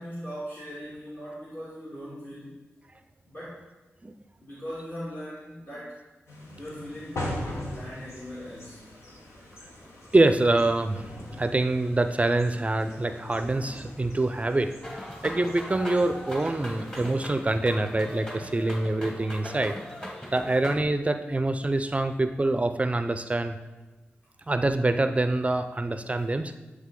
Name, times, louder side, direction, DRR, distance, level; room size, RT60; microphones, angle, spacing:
voice 1, 0.0-2.5 3.2-3.6 4.4-6.0 6.6-8.8, equal, 45° left, -9 dB, 1.9 m, -40 dB
sound 1, 6.3-17.3, left 1 dB, 80° left, 1.1 m, -41 dB
voice 2, 10.1-11.0 11.4-14.7 15.2-19.8 20.3-23.6 24.5-26.5, right 2 dB, 30° right, 9 dB, 0.4 m, -25 dB
Samba on the beach, 14.8-20.8, equal, 20° left, 1.5 m, -39 dB
9.4 x 3.3 x 3.7 m, 1.2 s
cardioid pair, 50°, 5 cm